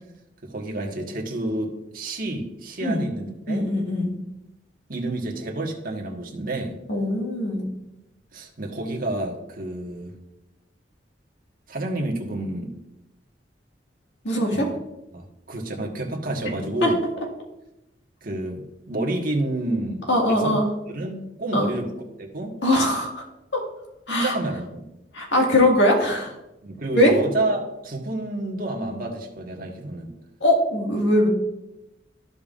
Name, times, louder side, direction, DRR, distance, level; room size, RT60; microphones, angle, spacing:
voice 1, 0.4-3.7 4.9-6.8 8.3-10.1 11.7-12.7 14.5-14.8 15.1-17.0 18.2-20.6 20.9-21.9 22.2-22.6 24.1-24.8 26.6-30.1, right 2 dB, 50° right, 1 dB, 1.5 m, -29 dB
voice 2, 3.5-4.2 6.9-7.7 14.2-14.7 16.8-16.9 20.1-20.7 21.5-21.7 22.6-23.2 23.5-23.6 24.1-24.4 25.1-26.3 26.9-27.1 30.4-31.3, left 1 dB, 80° left, 0 dB, 1.9 m, -21 dB
14.0 x 5.3 x 2.5 m, 0.91 s
head